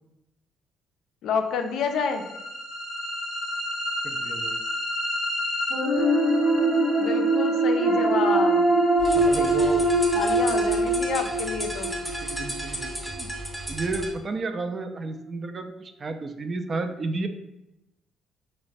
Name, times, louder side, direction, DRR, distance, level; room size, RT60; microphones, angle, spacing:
voice 1, 1.2-2.2 7.0-8.7 10.1-11.9, left 5 dB, 70° left, 5 dB, 0.3 m, -28 dB
sound 1, 1.9-13.9, right 1 dB, 80° right, 0.9 m, -24 dB
voice 2, 4.0-4.6 9.1-9.9 12.0-13.3 13.7-17.3, right 3 dB, 40° right, 7 dB, 0.3 m, -32 dB
sound 2, 9.0-14.2, right 1 dB, 5° right, 0.6 m, -34 dB
3.0 x 2.1 x 2.6 m, 0.89 s
supercardioid pair, 65°, 0 cm